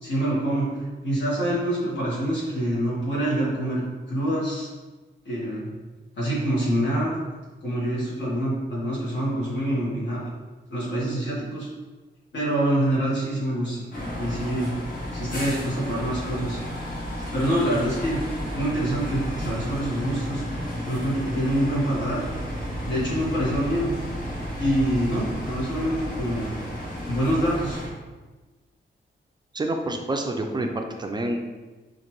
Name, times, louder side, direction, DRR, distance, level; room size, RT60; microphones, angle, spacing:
voice 1, 0.0-4.7 5.2-5.7 6.2-7.1 7.6-10.2 10.7-11.7 12.3-13.9 14.1-14.7 15.1-16.6 17.3-18.2 18.5-20.4 20.9-22.3 22.8-23.9 24.5-26.6 27.1-27.8, right 1 dB, 70° left, -7 dB, 1.3 m, -26 dB
sound 1, 13.9-27.9, equal, 45° left, 1.1 m, -33 dB
voice 2, 29.5-31.4, right 2 dB, 25° right, 3 dB, 0.3 m, -28 dB
5.0 x 2.5 x 3.0 m, 1.2 s
wide cardioid pair, 150°, 19 cm